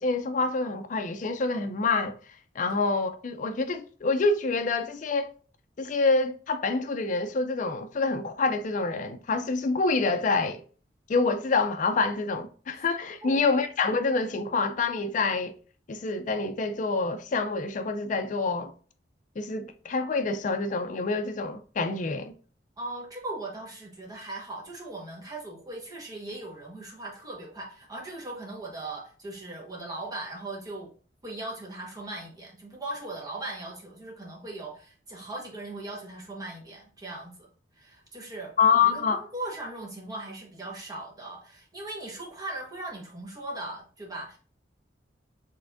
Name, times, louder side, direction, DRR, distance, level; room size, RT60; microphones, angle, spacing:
voice 1, 0.0-2.2 2.6-5.3 5.8-10.6 11.1-15.5 15.9-18.7 19.4-22.3 38.6-39.2, left 4 dB, 45° left, 0.4 m, -27 dB
voice 2, 13.2-13.6 22.8-30.9 31.2-37.5 37.7-38.5 38.8-44.4, right 2 dB, 20° right, 1.3 m, -39 dB
5.5 x 3.4 x 2.5 m
head